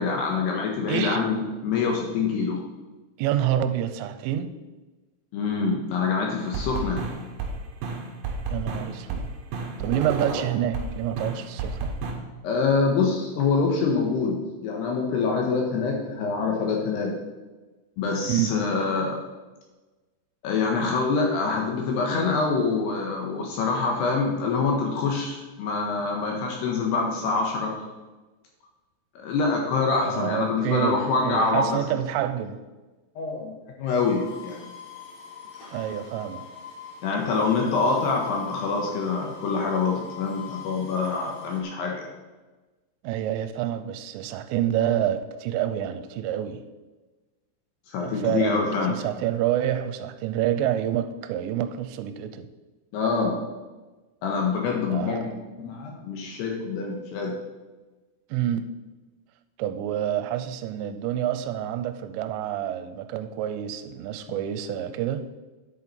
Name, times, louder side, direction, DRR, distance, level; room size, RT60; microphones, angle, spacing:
voice 1, 0.0-2.6 5.3-7.0 12.4-17.1 18.0-19.2 20.4-27.7 29.2-31.8 33.2-33.5 33.8-34.7 37.0-42.1 47.9-48.9 52.9-53.4 54.2-57.3, left 4 dB, 70° left, 1 dB, 2.9 m, -25 dB
voice 2, 0.9-1.2 3.2-4.5 8.5-9.3 9.8-12.0 18.3-18.5 30.0-32.6 35.7-36.4 43.0-46.6 48.0-52.5 54.9-55.3 58.3-58.7 59.6-65.3, right 11 dB, 85° right, 11 dB, 3.1 m, -28 dB
sound 1, 6.5-10.9 11.2-12.1, right 4 dB, 65° right, 2.3 m, -31 dB
sound 2, 33.9-41.6, left 8 dB, 85° left, 1.4 m, -42 dB
10.0 x 8.4 x 4.3 m, 1.2 s
omnidirectional pair, 5.8 m